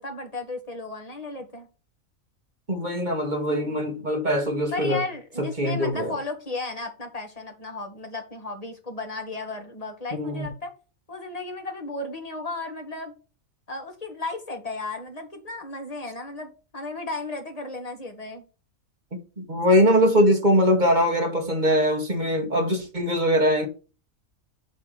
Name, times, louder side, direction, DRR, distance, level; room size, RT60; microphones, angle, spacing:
voice 1, 0.0-1.7 3.6-3.8 4.7-10.7 11.1-13.1 13.7-18.4 20.2-20.3, left 3 dB, 25° left, 1.9 m, -34 dB
voice 2, 2.7-5.0 5.4-6.1 10.1-10.5 19.4-23.7, equal, 35° right, 2.1 m, -22 dB
8.9 x 3.5 x 6.4 m
omnidirectional pair, 1.4 m